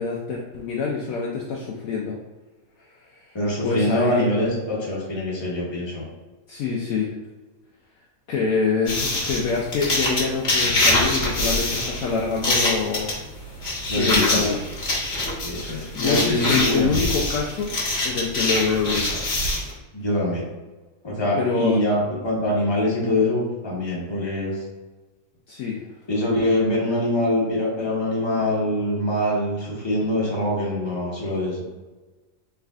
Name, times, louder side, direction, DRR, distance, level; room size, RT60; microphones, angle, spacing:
voice 1, 0.0-2.2 3.1-3.3 3.6-4.2 6.5-7.1 8.3-13.2 14.0-14.6 15.5-17.7 18.0-19.1 21.4-21.8 25.5-25.8, left 5 dB, 70° left, -2 dB, 0.9 m, -25 dB
voice 2, 3.3-6.1 13.9-14.5 15.4-17.1 19.9-20.5 21.0-24.6 26.1-31.6, left 1 dB, 20° left, -6 dB, 1.1 m, -24 dB
sound 1, 8.9-19.7, left 2 dB, 45° left, 1.3 m, -24 dB
4.1 x 3.4 x 2.4 m, 1.2 s
omnidirectional pair, 1.7 m